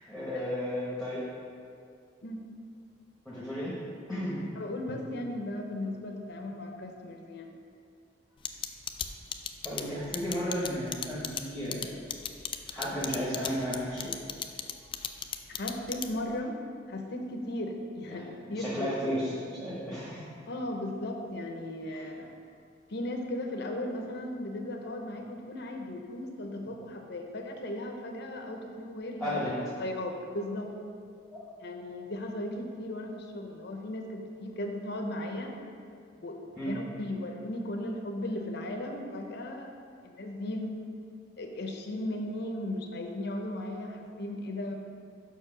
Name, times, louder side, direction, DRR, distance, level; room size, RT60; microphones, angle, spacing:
voice 1, 0.1-1.3 3.2-3.8 4.1-4.4 9.6-11.9 12.7-14.1 18.1-18.2 18.5-20.4 21.8-22.0 29.2-29.5 31.3-31.4 36.6-36.7, equal, ahead, -8 dB, 1.1 m, -33 dB
voice 2, 4.6-7.5 15.5-16.6 16.9-18.9 20.5-22.3 22.9-29.4 29.8-30.7 31.6-35.5 36.2-39.7 40.0-40.7 41.4-44.7, left 1 dB, 60° left, 3 dB, 0.8 m, -36 dB
sound 1, 8.4-16.3, left 8 dB, 25° left, 0.3 m, -35 dB
5.7 x 4.7 x 5.9 m, 2.3 s
head